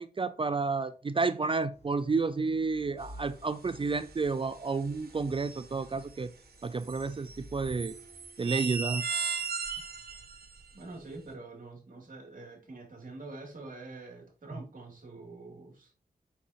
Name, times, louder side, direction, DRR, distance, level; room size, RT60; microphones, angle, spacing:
voice 1, 0.0-6.3 6.6-7.9 8.4-9.0, right 4 dB, 35° right, 0.4 m, -31 dB
sound 1, 1.7-7.8, equal, 40° left, 2.7 m, -53 dB
sound 2, 3.8-4.3 4.5-5.7 6.6-10.9, right 5 dB, 70° right, 1.5 m, -37 dB
voice 2, 10.7-15.9, right 2 dB, 55° right, 2.9 m, -46 dB
7.0 x 6.1 x 2.9 m
wide cardioid pair, 80°, 17 cm